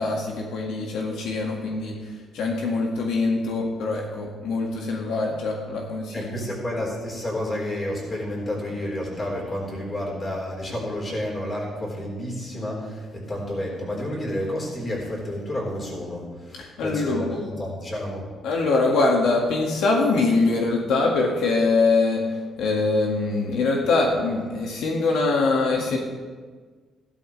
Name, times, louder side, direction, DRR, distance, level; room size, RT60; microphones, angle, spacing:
voice 1, 0.0-6.4 16.6-17.4 18.4-26.0, left 3 dB, 90° left, -1 dB, 1.8 m, -23 dB
voice 2, 6.1-18.3, left 1 dB, 25° left, -3 dB, 4.0 m, -30 dB
15.0 x 12.5 x 3.3 m, 1.5 s
cardioid pair, 135°, 0 cm